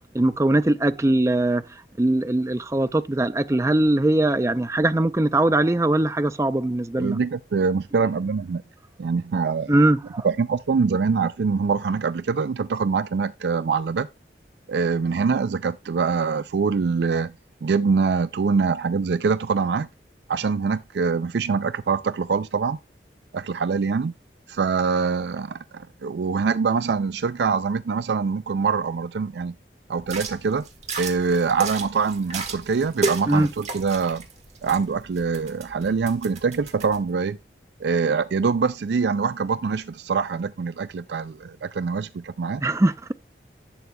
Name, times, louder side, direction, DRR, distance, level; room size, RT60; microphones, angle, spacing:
voice 1, 0.1-1.6 2.0-7.2 9.7-10.3 33.3-33.5 42.6-43.1, right 1 dB, 15° right, 0.4 m, -21 dB
voice 2, 7.0-8.6 9.0-9.8 10.2-14.1 14.7-17.3 17.6-19.9 20.3-22.8 23.3-24.1 24.5-29.6 29.9-30.6 31.0-34.2 34.6-37.4 37.8-42.6, right 5 dB, 75° right, 0.4 m, -24 dB
sound 1, 30.0-37.0, right 3 dB, 40° right, 1.5 m, -34 dB
11.0 x 7.9 x 2.2 m
head